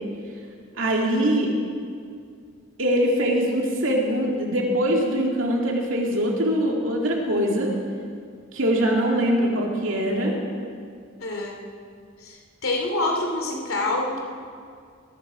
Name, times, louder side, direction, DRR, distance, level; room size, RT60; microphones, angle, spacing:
voice 1, 0.8-1.5 2.8-7.7 8.5-10.4, equal, 70° right, -1 dB, 2.4 m, -22 dB
voice 2, 11.2-11.7 12.2-14.2, left 2 dB, 90° left, 1 dB, 2.8 m, -27 dB
18.0 x 12.0 x 5.0 m, 2.2 s
head